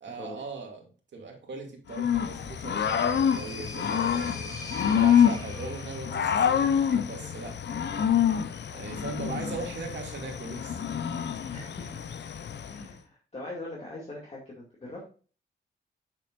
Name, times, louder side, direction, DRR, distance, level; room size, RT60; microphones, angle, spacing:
voice 1, 0.0-4.5 4.9-8.1 8.7-10.8, right 4 dB, 70° right, 1 dB, 2.4 m, -40 dB
Growling / Cricket, 1.9-12.9, left 8 dB, 65° left, 0.7 m, -27 dB
sound 1, 2.4-6.2, left 2 dB, 15° left, 2.2 m, -43 dB
voice 2, 11.5-12.0 12.7-15.2, left 2 dB, 35° left, -4 dB, 2.4 m, -42 dB
8.1 x 6.9 x 2.5 m, 0.38 s
wide cardioid pair, 120°, 19 cm